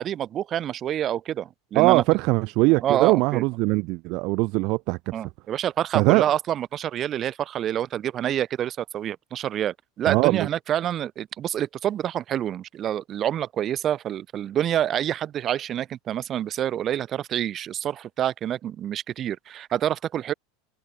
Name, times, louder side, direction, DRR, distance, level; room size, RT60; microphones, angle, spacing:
voice 1, 0.0-2.0 2.8-3.4 5.1-20.3, right 11 dB, 40° right, 1.5 m, -27 dB
voice 2, 1.7-5.1 5.9-6.2 10.1-10.5, right 25 dB, 60° right, 0.8 m, -21 dB
hypercardioid pair, 100°, 0 cm